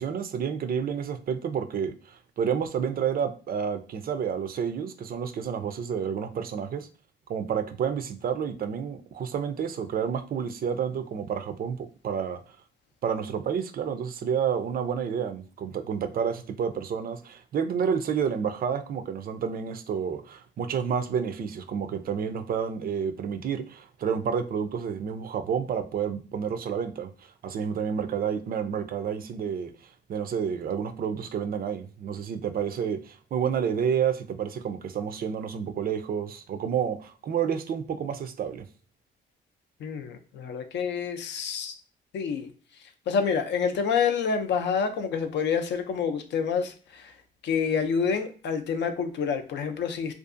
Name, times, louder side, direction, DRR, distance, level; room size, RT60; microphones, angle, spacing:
voice 1, 0.0-6.9 7.3-12.4 13.0-38.6, right 7 dB, 50° right, 0.4 m, -30 dB
voice 2, 39.8-41.8 42.1-42.5 43.1-47.1 47.4-50.1, left 6 dB, 65° left, 0.5 m, -28 dB
2.6 x 2.3 x 2.5 m
cardioid pair, 90°, 20 cm